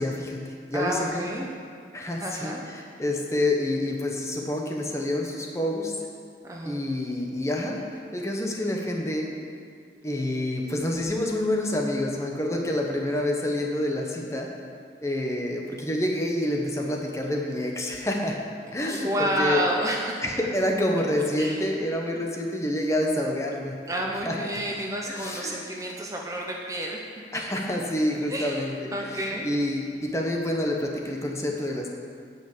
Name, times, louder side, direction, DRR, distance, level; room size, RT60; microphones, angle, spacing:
voice 1, 0.0-1.3 1.9-5.9 6.6-7.8 8.1-9.3 10.0-14.5 15.0-18.4 18.7-19.7 20.2-23.8 24.2-24.6 25.1-25.6 27.3-31.9, left 1 dB, 15° left, 0 dB, 1.0 m, -28 dB
voice 2, 0.7-1.5 2.2-2.6 6.4-6.8 18.8-20.2 21.4-21.6 22.1-22.2 23.9-27.0 28.3-29.5, right 1 dB, 20° right, -1 dB, 0.8 m, -30 dB
10.0 x 5.7 x 8.5 m, 2.2 s
head